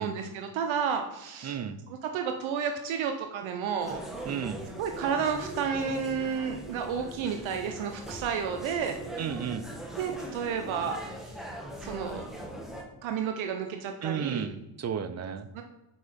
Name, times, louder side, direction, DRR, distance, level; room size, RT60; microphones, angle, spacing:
voice 1, 0.0-1.6 1.9-4.0 4.8-9.0 10.0-11.0 11.8-12.2 13.0-14.5 15.5-15.6, right 6 dB, 70° right, 5 dB, 0.8 m, -31 dB
voice 2, 1.4-1.8 4.3-4.6 9.2-9.7 14.0-15.5, right 7 dB, 35° right, 12 dB, 0.5 m, -33 dB
sound 1, 3.8-12.8, right 1 dB, ahead, 1.3 m, -41 dB
6.3 x 4.8 x 5.1 m, 1.0 s
cardioid pair, 115°, 50 cm